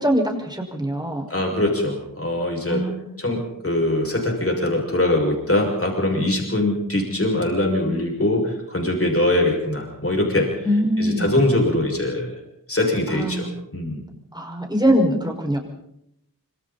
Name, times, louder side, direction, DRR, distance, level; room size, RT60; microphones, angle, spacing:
voice 1, 0.0-1.2 2.7-3.2 10.6-11.3 13.1-13.6 14.3-15.6, equal, 10° right, 1 dB, 5.7 m, -22 dB
voice 2, 1.3-2.8 3.2-10.5 11.0-12.3 12.7-14.0, left 1 dB, 40° left, 1 dB, 6.3 m, -22 dB
26.0 x 25.5 x 4.3 m, 0.78 s
wide cardioid pair, 60°, 34 cm